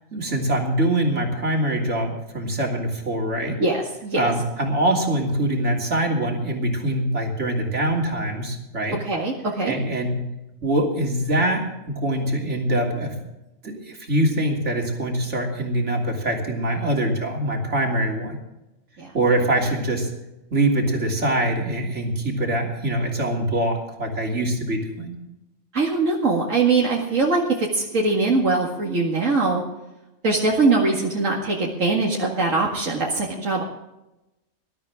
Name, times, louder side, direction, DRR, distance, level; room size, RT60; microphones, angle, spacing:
voice 1, 0.1-3.6 4.2-9.0 9.7-10.2 10.6-13.1 13.6-18.4 19.1-20.1 20.5-25.1, right 1 dB, 65° right, 0 dB, 3.4 m, -23 dB
voice 2, 3.6-4.3 9.0-9.7 19.0-19.1 25.7-29.6 30.2-33.6, right 3 dB, 85° right, -3 dB, 2.4 m, -22 dB
20.5 x 13.0 x 3.7 m, 0.94 s
omnidirectional pair, 1.3 m